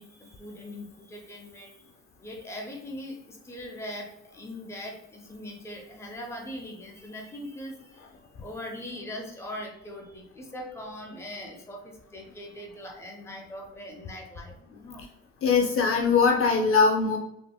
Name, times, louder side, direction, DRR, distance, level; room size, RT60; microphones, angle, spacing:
voice 1, 0.0-1.9 2.2-8.1 8.4-15.1, left 1 dB, 10° left, 0 dB, 0.7 m, -41 dB
voice 2, 15.4-17.2, left 5 dB, 45° left, 2 dB, 0.6 m, -21 dB
3.5 x 2.8 x 2.3 m, 0.84 s
cardioid pair, 90°, 30 cm